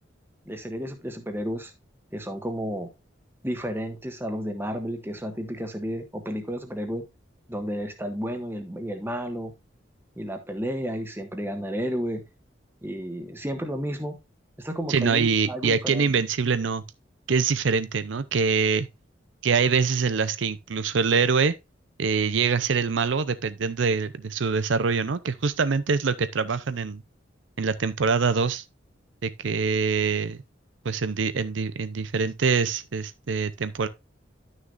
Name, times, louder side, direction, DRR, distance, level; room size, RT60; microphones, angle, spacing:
voice 1, 0.5-1.7 2.1-2.9 3.4-7.0 7.5-9.5 10.2-12.2 12.8-14.2 14.6-16.1, equal, 10° right, 1.3 m, -32 dB
voice 2, 14.9-16.8 17.3-18.9 19.4-21.5 22.0-27.0 27.6-28.6 29.2-30.4 30.8-33.9, right 5 dB, 75° right, 0.6 m, -24 dB
11.5 x 6.5 x 2.5 m
head